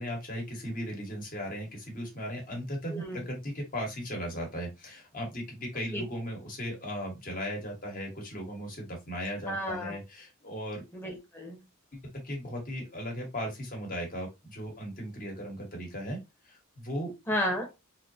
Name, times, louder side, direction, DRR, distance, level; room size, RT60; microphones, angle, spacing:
voice 1, 0.0-10.8 11.9-16.2 16.4-17.1, equal, 40° left, 1.7 m, -37 dB
voice 2, 2.9-3.3 5.9-6.0 9.5-10.0 10.9-11.6 17.3-17.7, equal, 10° left, 1.2 m, -32 dB
4.0 x 2.9 x 2.8 m
head